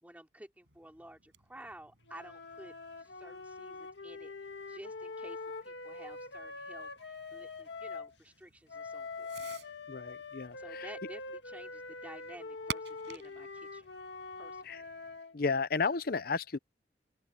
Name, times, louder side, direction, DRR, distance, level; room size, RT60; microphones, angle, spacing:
voice 1, 0.0-9.4 10.6-13.9 14.4-14.8, right 1 dB, 10° right, 3.8 m, -52 dB
Fireworks, 0.6-15.2, right 5 dB, 80° right, 7.7 m, -52 dB
sound 1, 2.1-8.1 8.7-15.4, left 3 dB, 80° left, 1.9 m, -44 dB
voice 2, 9.9-10.9 14.6-14.8 15.3-16.6, left 4 dB, 60° left, 0.7 m, -33 dB
open air
head